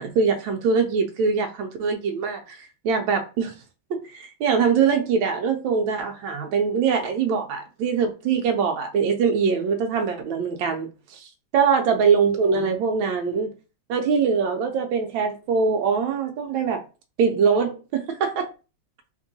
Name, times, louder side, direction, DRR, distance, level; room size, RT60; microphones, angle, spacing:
voice 1, 0.0-3.5 3.9-13.5 13.9-16.8 17.2-18.5, right 6 dB, 75° right, 1.2 m, -23 dB
3.5 x 2.9 x 2.6 m
omnidirectional pair, 2.2 m